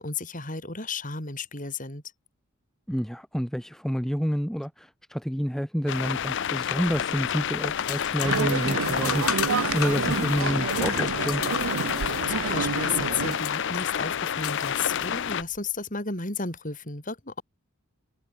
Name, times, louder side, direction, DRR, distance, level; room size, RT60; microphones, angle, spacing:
voice 1, 0.0-2.0 12.0-17.4, left 4 dB, 35° left, 6.9 m, -33 dB
voice 2, 2.9-9.3 9.5-11.4, equal, ahead, 2.0 m, -29 dB
sound 1, 5.9-15.4, left 8 dB, 55° left, 0.5 m, -29 dB
sound 2, 6.8-15.6, left 9 dB, 85° left, 1.8 m, -36 dB
sound 3, 8.2-13.4, right 5 dB, 70° right, 0.5 m, -29 dB
head